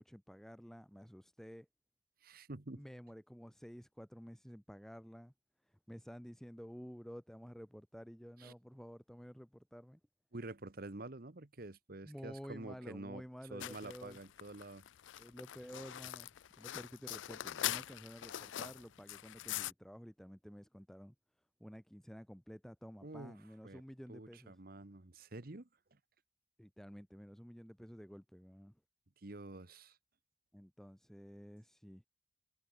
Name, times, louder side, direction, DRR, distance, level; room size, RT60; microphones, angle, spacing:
voice 1, 0.0-1.7 2.8-5.3 5.6-10.0 12.0-14.2 15.2-21.1 21.6-24.6 26.6-28.8 30.5-32.0, equal, ahead, 1.3 m, -52 dB
voice 2, 2.2-2.8 8.4-8.5 10.3-13.2 13.5-14.9 23.0-23.3 23.6-23.8 24.1-25.7 29.2-30.0, right 2 dB, 50° right, 1.2 m, -48 dB
sound 1, 13.6-19.7, left 13 dB, 80° left, 0.4 m, -43 dB
head